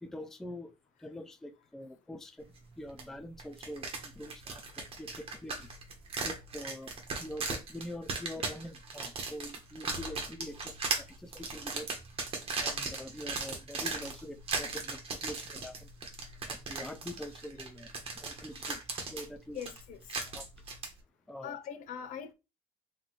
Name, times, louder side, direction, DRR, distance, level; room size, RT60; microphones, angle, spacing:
voice 1, 0.0-2.5 2.8-5.7 6.2-6.9 7.2-11.9 12.6-15.9 16.5-19.6 20.3-20.5 21.3-21.6, left 1 dB, 5° left, 0.4 m, -45 dB
sound 1, 3.0-3.1 3.4-20.9, right 4 dB, 40° right, 1.1 m, -38 dB
voice 2, 19.5-20.2 21.4-22.3, left 8 dB, 60° left, 0.8 m, -42 dB
3.9 x 3.5 x 3.1 m
cardioid pair, 130°, 15 cm